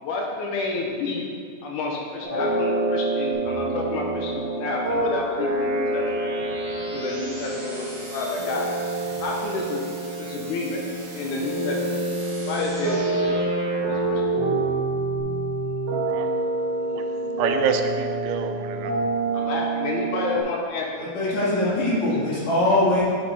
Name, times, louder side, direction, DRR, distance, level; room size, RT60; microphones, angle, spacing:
voice 1, 0.0-1.3 1.6-6.3 6.8-8.6 9.2-9.8 10.2-10.8 11.1-11.8 12.4-13.3 13.7-14.2 19.3-22.1 22.4-22.6, left 3 dB, 80° left, -1 dB, 2.0 m, -30 dB
sound 1, 2.2-20.4, right 2 dB, 65° right, 1.1 m, -27 dB
sound 2, 3.3-15.2, equal, 35° right, 1.7 m, -39 dB
voice 2, 15.9-16.3 16.8-17.1 17.4-19.0, right 7 dB, 85° right, 6 dB, 2.2 m, -27 dB
voice 3, 21.0-23.0, left 1 dB, 60° left, -8 dB, 2.9 m, -22 dB
8.3 x 5.2 x 4.0 m, 2.2 s
omnidirectional pair, 3.8 m